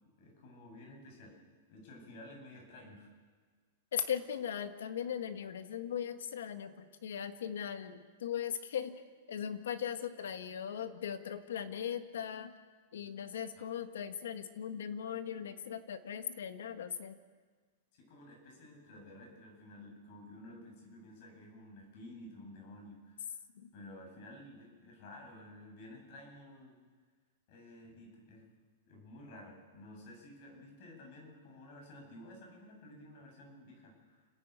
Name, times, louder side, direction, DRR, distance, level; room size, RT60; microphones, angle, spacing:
voice 1, 0.2-1.4 1.7-3.1 13.6-13.7 17.9-23.3 23.7-26.8 27.5-28.4 28.9-34.3, left 1 dB, 50° left, 0 dB, 7.8 m, -52 dB
voice 2, 3.9-9.0 9.3-12.6 12.9-17.2 23.5-23.7, left 8 dB, 85° left, 9 dB, 1.6 m, -39 dB
29.5 x 11.0 x 8.4 m, 1.5 s
supercardioid pair, 150°, 0 cm